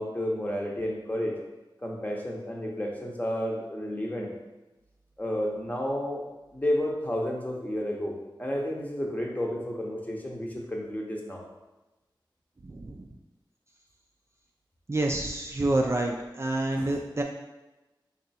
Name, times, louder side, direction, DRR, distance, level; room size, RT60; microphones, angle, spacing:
voice 1, 0.0-1.3 1.8-4.3 5.2-6.2 6.5-11.4 16.7-16.9, equal, 20° left, -1 dB, 0.8 m, -31 dB
voice 2, 12.6-13.1 14.9-17.2, right 2 dB, 35° right, 1 dB, 0.4 m, -28 dB
3.7 x 2.3 x 4.1 m, 1.1 s
wide cardioid pair, 55°, 9 cm